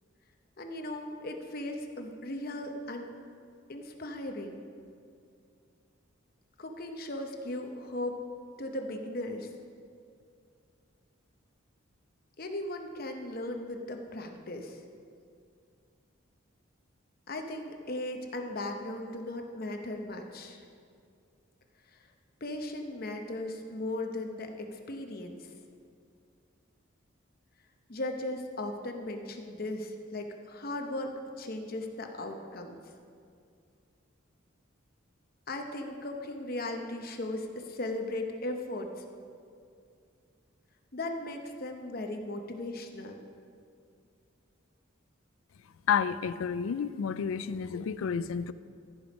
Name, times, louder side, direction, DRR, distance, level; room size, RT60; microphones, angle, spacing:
voice 1, 0.6-3.1 3.7-4.6 6.6-8.2 8.6-9.5 12.4-14.8 17.3-20.6 21.9-22.0 22.4-25.5 27.9-31.1 31.4-32.8 35.5-39.0 40.9-43.2, left 1 dB, 45° left, 4 dB, 0.8 m, -37 dB
voice 2, 45.9-48.5, left 7 dB, 85° left, 15 dB, 0.4 m, -30 dB
15.0 x 5.2 x 5.0 m, 2.3 s
head